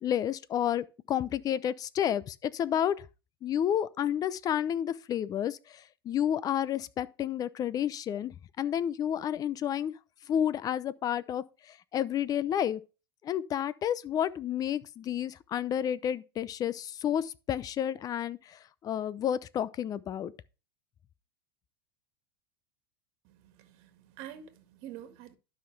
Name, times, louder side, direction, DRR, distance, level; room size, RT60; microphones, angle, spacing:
voice 1, 0.0-3.0 3.4-10.0 10.3-12.8 13.2-20.3, left 10 dB, 30° left, 0.6 m, -31 dB
voice 2, 23.2-25.4, right 11 dB, 50° right, 1.7 m, -47 dB
12.0 x 5.8 x 3.4 m
hypercardioid pair, 115°, 13 cm